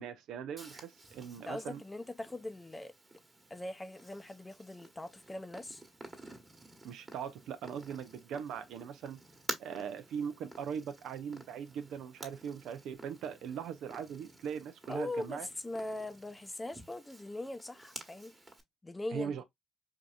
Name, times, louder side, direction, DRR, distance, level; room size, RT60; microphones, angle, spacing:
voice 1, 0.0-1.8 6.8-9.2 9.6-15.5 19.1-19.4, right 7 dB, 75° right, 0.6 m, -40 dB
Purr, 0.6-18.6, right 2 dB, 20° right, 1.3 m, -50 dB
voice 2, 1.5-2.9 3.5-5.8 14.9-18.3 18.8-19.3, left 2 dB, 15° left, 0.6 m, -41 dB
4.6 x 2.7 x 2.4 m
supercardioid pair, 65°, 0 cm